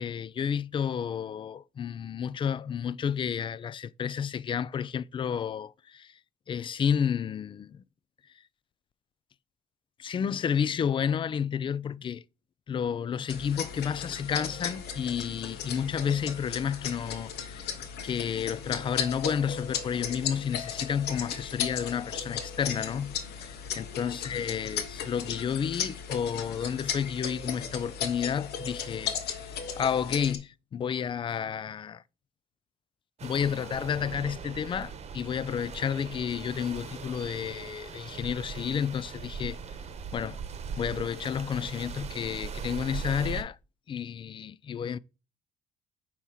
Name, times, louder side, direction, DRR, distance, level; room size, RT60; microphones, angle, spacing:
voice 1, 0.0-6.1 6.5-7.8 10.0-12.2 12.7-17.7 18.0-32.0 33.2-39.6 40.1-40.4 40.8-43.6 43.9-45.0, left 7 dB, 30° left, 0.3 m, -31 dB
sound 1, 13.3-30.4, left 7 dB, 75° left, 1.2 m, -36 dB
sound 2, 33.2-43.4, right 6 dB, 40° right, 1.0 m, -40 dB
8.2 x 3.0 x 5.6 m
cardioid pair, 110°, 17 cm